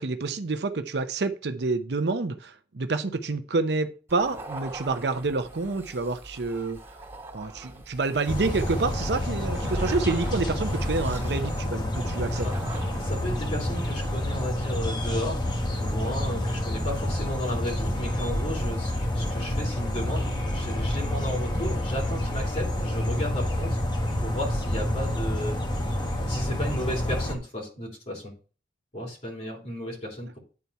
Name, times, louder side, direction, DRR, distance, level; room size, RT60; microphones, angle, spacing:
voice 1, 0.0-6.8 7.3-12.5 21.5-21.6, right 3 dB, 70° right, 0.7 m, -28 dB
sound 1, 4.1-13.4, right 2 dB, 15° right, 2.7 m, -43 dB
sound 2, 8.3-27.4, left 1 dB, 25° left, 1.1 m, -28 dB
voice 2, 13.0-15.4 15.8-23.8 24.2-25.6 26.3-28.3 28.9-30.4, left 1 dB, 40° left, 3.2 m, -34 dB
9.6 x 4.2 x 4.6 m
head